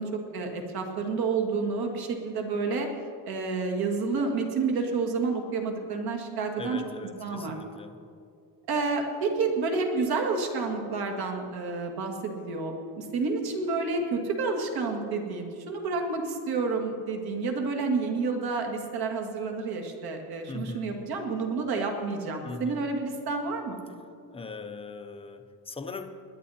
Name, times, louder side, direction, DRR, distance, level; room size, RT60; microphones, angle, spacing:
voice 1, 0.0-2.9 3.3-6.8 7.2-7.6 8.7-23.8, right 4 dB, 60° right, 3 dB, 2.1 m, -29 dB
voice 2, 6.6-8.0 20.5-21.0 22.4-22.8 24.3-26.2, left 3 dB, 15° left, 7 dB, 0.7 m, -40 dB
20.5 x 11.0 x 4.3 m, 2.3 s
cardioid pair, 165°, 42 cm